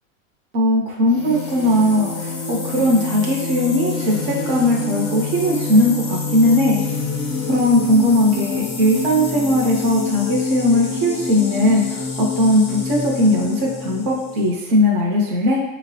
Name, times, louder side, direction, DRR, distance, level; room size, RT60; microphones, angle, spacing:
voice 1, 0.5-6.8 7.5-15.6, left 1 dB, 45° right, -2 dB, 0.6 m, -18 dB
sound 1, 1.1-14.5, left 4 dB, 30° left, 0.4 m, -27 dB
4.3 x 2.0 x 2.6 m, 0.96 s
supercardioid pair, 165°, 40 cm